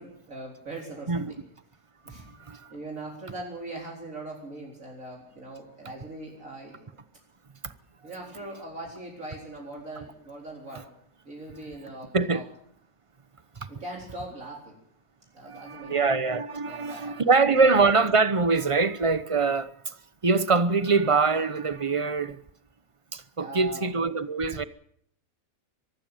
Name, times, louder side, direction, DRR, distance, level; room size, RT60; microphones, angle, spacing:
voice 1, 0.0-1.4 2.0-7.0 8.0-10.9 11.2-12.5 13.7-14.8 15.3-16.1 16.6-17.9 23.4-24.0, right 2 dB, 65° right, 4.6 m, -41 dB
voice 2, 2.2-2.7 12.1-12.4 13.6-13.7 15.4-20.0 20.2-22.4 23.1-24.6, right 4 dB, 25° right, 0.9 m, -24 dB
24.0 x 13.0 x 9.1 m
omnidirectional pair, 1.5 m